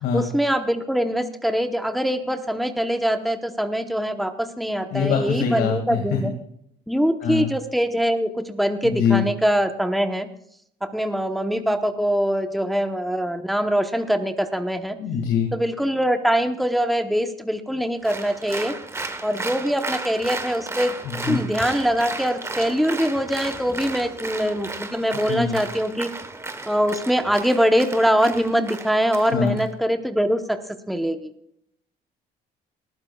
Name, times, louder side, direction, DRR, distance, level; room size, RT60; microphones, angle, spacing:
voice 1, 0.1-6.3 6.9-10.3 10.8-15.0 15.5-18.7 19.2-20.9 21.2-26.1 26.7-30.6 30.9-31.3, equal, ahead, 6 dB, 0.9 m, -23 dB
voice 2, 4.9-6.0 7.2-7.5 8.8-9.2 15.0-15.5 21.2-21.4 25.3-25.6 29.3-29.6, left 7 dB, 85° left, 3 dB, 2.1 m, -23 dB
Applause, 18.0-29.7, right 3 dB, 15° right, 1.2 m, -34 dB
19.5 x 14.0 x 2.3 m, 0.71 s
cardioid pair, 110°, 17 cm